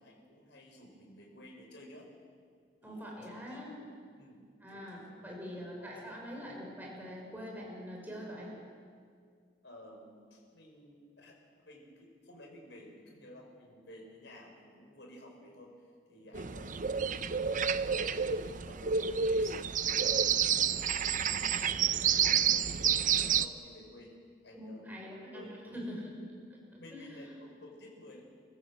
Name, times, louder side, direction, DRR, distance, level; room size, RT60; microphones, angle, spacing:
voice 1, 0.0-2.1 2.8-3.6 4.2-5.5 5.8-6.1 6.4-6.6 9.6-11.4 11.7-21.3 22.2-24.2 24.4-25.0 25.3-25.9 26.8-28.2, left 1 dB, 75° left, 0 dB, 6.1 m, -53 dB
voice 2, 2.8-3.7 4.6-8.5 24.5-26.1 26.5-26.6 26.9-27.2, equal, 10° right, -3 dB, 6.2 m, -44 dB
sound 1, 16.3-23.5, right 7 dB, 45° right, 0.7 m, -29 dB
29.5 x 15.5 x 8.0 m, 2.1 s
head